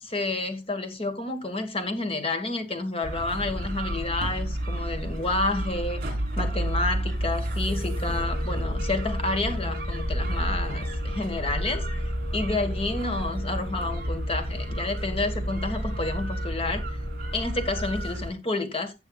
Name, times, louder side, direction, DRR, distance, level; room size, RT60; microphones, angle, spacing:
voice 1, 0.0-6.0 6.4-12.0 12.3-17.0 17.3-18.9, left 2 dB, 30° left, 1.5 m, -30 dB
sound 1, 3.0-18.3, equal, 50° right, 3.7 m, -30 dB
sound 2, 7.7-18.1, left 4 dB, 55° left, 2.1 m, -44 dB
15.5 x 6.9 x 2.3 m
head